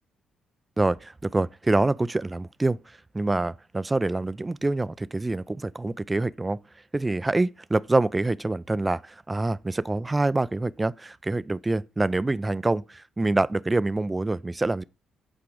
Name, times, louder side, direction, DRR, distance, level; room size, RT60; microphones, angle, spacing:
voice 1, 0.8-2.8 3.1-6.6 6.9-14.8, right 2 dB, 20° right, 0.4 m, -26 dB
8.5 x 4.6 x 5.0 m
hypercardioid pair, 50°, 0 cm